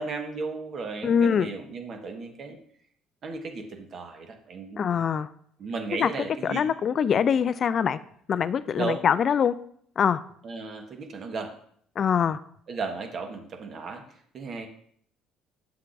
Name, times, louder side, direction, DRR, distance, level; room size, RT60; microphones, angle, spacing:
voice 1, 0.0-2.6 3.2-4.9 5.6-6.7 8.8-9.0 10.4-11.5 12.7-14.7, right 4 dB, 50° right, 5 dB, 1.3 m, -35 dB
voice 2, 1.0-1.5 4.8-5.3 6.0-6.1 6.4-8.0 8.3-9.5 10.0-10.2 12.0-12.4, left 7 dB, 50° left, 15 dB, 0.4 m, -23 dB
8.2 x 7.4 x 2.6 m, 0.63 s
supercardioid pair, 75°, 0 cm